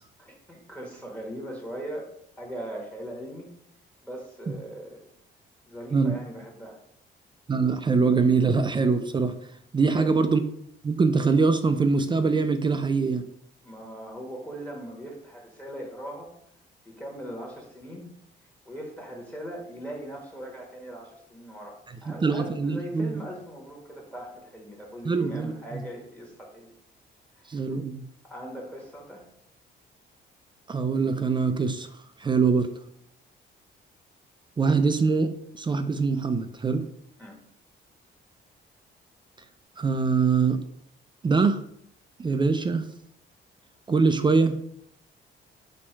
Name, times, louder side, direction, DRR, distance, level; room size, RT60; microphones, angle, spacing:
voice 1, 0.2-3.5 4.0-5.1 5.6-6.8 9.9-10.2 13.6-16.3 16.8-18.1 18.6-26.7 27.4-27.7 28.2-29.3 37.2-37.4, right 1 dB, 5° left, 0 dB, 1.1 m, -40 dB
voice 2, 7.5-9.3 9.7-10.4 10.8-13.3 22.1-23.2 25.0-25.8 27.5-28.0 30.7-31.9 32.2-32.7 34.6-35.3 35.6-36.9 39.8-40.6 41.2-41.6 42.2-42.9 43.9-44.6, right 4 dB, 25° right, 9 dB, 0.3 m, -23 dB
4.3 x 2.3 x 4.4 m, 0.71 s
cardioid pair, 90°, 20 cm